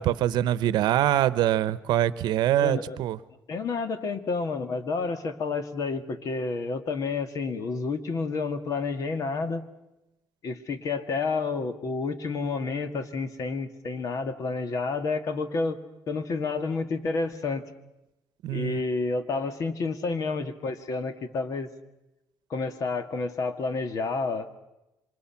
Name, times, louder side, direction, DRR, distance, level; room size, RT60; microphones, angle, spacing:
voice 1, 0.0-3.2 18.4-18.8, right 12 dB, 80° right, 17 dB, 0.9 m, -24 dB
voice 2, 2.6-3.0 3.5-9.7 10.4-15.8 16.1-17.7 18.5-21.7 22.5-24.6, left 4 dB, 50° left, 10 dB, 1.9 m, -30 dB
27.5 x 25.0 x 5.9 m, 0.92 s
cardioid pair, 130°, 7 cm